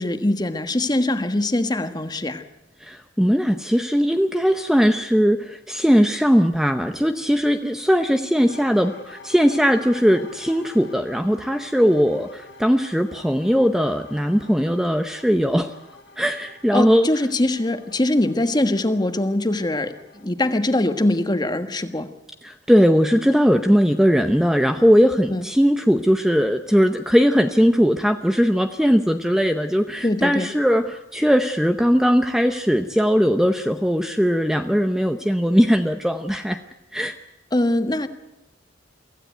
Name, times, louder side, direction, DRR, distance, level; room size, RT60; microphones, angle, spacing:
voice 1, 0.0-2.4 16.7-19.9 20.2-22.1 25.3-25.4 30.0-30.5 37.5-38.1, left 1 dB, 20° left, 9 dB, 1.3 m, -22 dB
voice 2, 2.8-15.7 16.2-17.1 22.4-36.6 36.9-37.1, equal, 5° right, 7 dB, 0.7 m, -19 dB
sound 1, 8.5-20.3, left 3 dB, 80° left, 4.1 m, -46 dB
24.0 x 15.5 x 9.3 m, 0.98 s
head